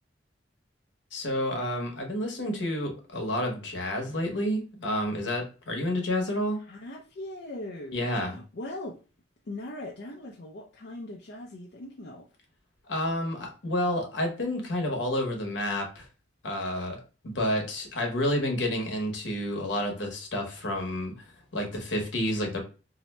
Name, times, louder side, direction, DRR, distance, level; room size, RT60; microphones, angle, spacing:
voice 1, 1.1-6.6 7.9-8.4 12.9-16.1 16.4-17.0 17.2-21.1 21.5-22.6, left 1 dB, 75° left, 0.9 m, -29 dB
voice 2, 6.6-9.0 9.5-12.3, left 1 dB, 60° left, 0.5 m, -40 dB
2.7 x 2.1 x 4.0 m
head